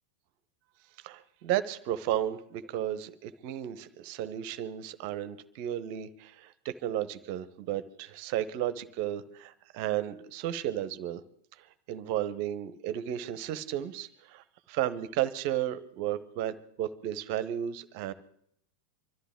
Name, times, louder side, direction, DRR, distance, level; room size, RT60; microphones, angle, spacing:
voice 1, 1.0-11.2 11.9-18.1, right 11 dB, 45° right, 13 dB, 1.0 m, -33 dB
25.0 x 13.5 x 3.7 m, 0.67 s
figure-of-eight pair, 90°, 0 cm